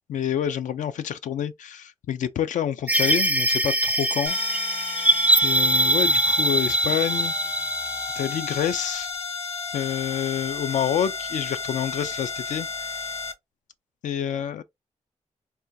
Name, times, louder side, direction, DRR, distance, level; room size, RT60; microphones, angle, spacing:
voice 1, 0.1-4.4 5.4-7.3 8.2-9.1 9.7-13.1 14.0-14.6, left 9 dB, 85° left, 0.4 m, -28 dB
sound 1, 2.9-9.1, right 1 dB, 10° right, 0.4 m, -23 dB
sound 2, 4.3-13.3, left 5 dB, 55° left, 0.9 m, -33 dB
3.4 x 2.3 x 2.6 m
cardioid pair, 70°, 13 cm